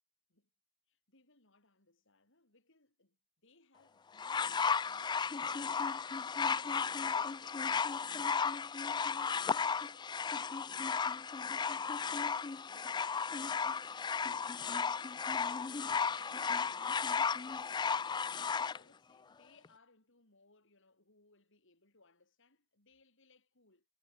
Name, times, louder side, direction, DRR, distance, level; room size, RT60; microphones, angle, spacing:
voice 1, 0.9-5.9 6.4-8.4 8.8-10.7 11.3-15.0 15.4-17.7 18.7-23.9, left 3 dB, 65° left, 7.4 m, -67 dB
sound 1, 4.2-18.8 19.6-19.7, left 6 dB, 20° left, 0.3 m, -34 dB
head